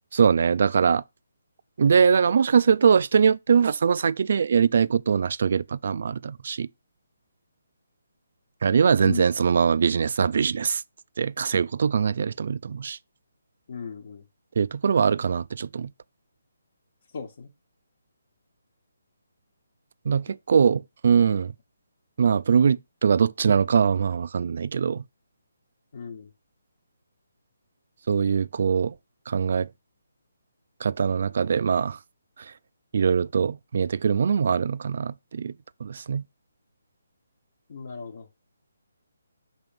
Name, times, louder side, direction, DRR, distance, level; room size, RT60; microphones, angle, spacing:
voice 1, 0.1-1.0 1.8-6.7 8.6-10.8 11.2-13.0 14.6-15.9 20.1-21.5 22.2-25.0 28.1-28.9 29.3-29.7 30.8-32.0 32.9-35.5 35.8-36.2, right 6 dB, 55° right, 0.3 m, -22 dB
voice 2, 13.7-14.2 17.1-17.5 20.3-20.4 25.9-26.3 37.7-38.3, left 5 dB, 50° left, 1.0 m, -36 dB
6.1 x 3.0 x 5.2 m
hypercardioid pair, 160°, 0 cm